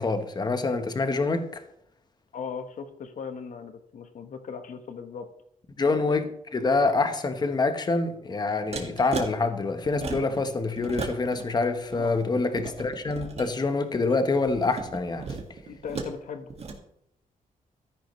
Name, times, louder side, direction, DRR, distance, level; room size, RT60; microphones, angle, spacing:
voice 1, 0.0-1.6 5.8-15.4, left 3 dB, 30° left, 8 dB, 1.1 m, -26 dB
voice 2, 2.3-5.3 11.9-12.1 15.7-16.5, left 6 dB, 60° left, 8 dB, 1.2 m, -38 dB
sound 1, 8.7-9.3 9.8-10.4 10.7-11.4 11.8-13.5 14.4-16.1 16.5-16.7, right 4 dB, 45° right, 1.9 m, -36 dB
13.5 x 10.5 x 3.2 m, 0.76 s
wide cardioid pair, 140°, 15 cm